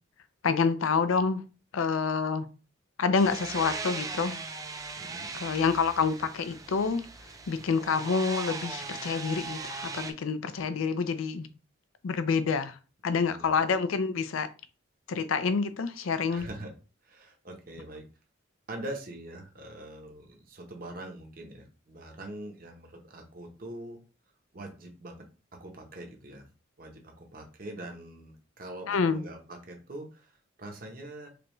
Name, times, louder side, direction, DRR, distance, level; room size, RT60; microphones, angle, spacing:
voice 1, 0.4-1.4 1.7-2.5 3.0-4.4 5.3-7.1 7.5-11.5 12.0-14.5 15.1-16.5 28.9-29.2, left 5 dB, 85° left, 0.5 m, -27 dB
sound 1, 3.2-10.1, right 4 dB, 15° right, 0.3 m, -39 dB
voice 2, 5.0-5.3 13.1-13.5 16.3-16.7 17.0-18.0 18.7-24.0 24.5-25.2 25.5-26.5 26.8-30.3 30.6-31.3, right 1 dB, 45° right, 0.8 m, -43 dB
5.0 x 2.3 x 3.0 m
head